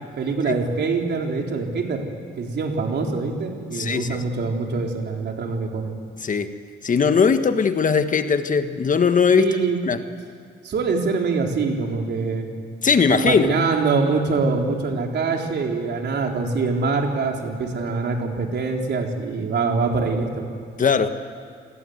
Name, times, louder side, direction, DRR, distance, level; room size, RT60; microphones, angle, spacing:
voice 1, 0.2-2.0 2.4-5.9 9.4-9.8 10.6-12.5 13.1-20.5, right 4 dB, 60° right, 2 dB, 3.9 m, -24 dB
voice 2, 3.7-4.2 6.2-6.5 6.8-9.6 9.9-10.0 12.8-13.6 20.8-21.1, left 6 dB, 40° left, 9 dB, 1.5 m, -19 dB
28.5 x 21.0 x 8.1 m, 2.2 s
cardioid pair, 90°, 20 cm